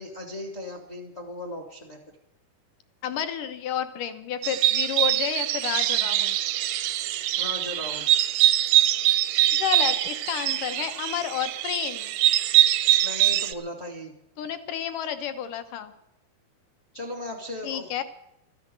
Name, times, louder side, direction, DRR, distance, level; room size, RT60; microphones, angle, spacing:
voice 1, 0.0-2.0 7.4-8.2 13.0-14.1 16.9-18.0, left 1 dB, 40° left, 2 dB, 0.9 m, -37 dB
voice 2, 3.0-6.4 9.5-12.1 14.4-15.9 17.6-18.0, left 9 dB, 70° left, 10 dB, 2.2 m, -30 dB
sound 1, 4.4-13.5, right 13 dB, 80° right, 2.2 m, -23 dB
13.5 x 10.5 x 8.8 m, 0.82 s
omnidirectional pair, 4.5 m